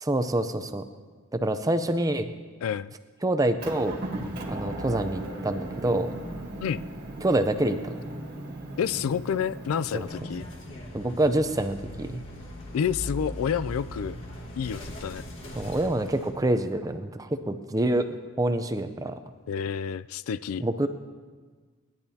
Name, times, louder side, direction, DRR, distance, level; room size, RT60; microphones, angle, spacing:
voice 1, 0.0-0.8 1.3-2.3 3.2-4.0 4.5-6.1 7.2-8.0 9.9-10.1 10.9-12.2 15.6-19.2 20.6-20.9, right 1 dB, 15° right, 9 dB, 0.5 m, -26 dB
voice 2, 2.6-2.9 6.6-6.8 8.8-10.5 12.7-14.1 14.6-15.2 19.5-20.6, left 7 dB, 80° left, 16 dB, 0.3 m, -29 dB
Motor vehicle (road) / Engine, 3.6-10.1, right 1 dB, 45° right, 1.7 m, -37 dB
sound 1, 10.0-16.3, equal, 60° left, 1.7 m, -39 dB
28.5 x 10.5 x 2.8 m, 1.5 s
head